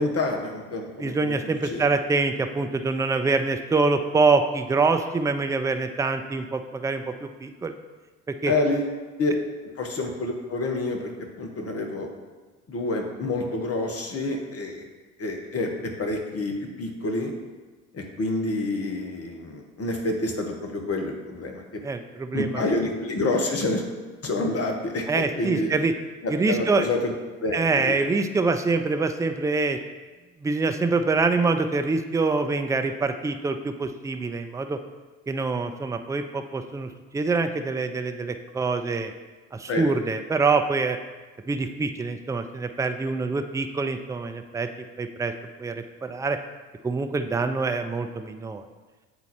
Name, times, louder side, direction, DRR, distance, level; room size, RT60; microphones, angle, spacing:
voice 1, 0.0-1.9 8.5-8.9 9.2-9.3 9.8-12.1 12.7-14.8 15.2-17.3 17.9-21.6 22.3-23.8 24.2-25.7 26.2-27.1 27.4-27.6 27.8-27.9 39.7-39.8, left 2 dB, 35° left, 3 dB, 1.3 m, -28 dB
voice 2, 1.0-7.7 8.4-8.5 21.8-22.6 25.1-25.9 26.3-26.9 27.5-29.8 30.4-34.8 35.3-39.1 39.5-41.0 41.5-44.7 45.0-45.3 45.6-46.4 46.8-48.7, right 3 dB, 10° right, 7 dB, 0.4 m, -25 dB
7.9 x 4.0 x 4.4 m, 1.3 s
hypercardioid pair, 60°, 41 cm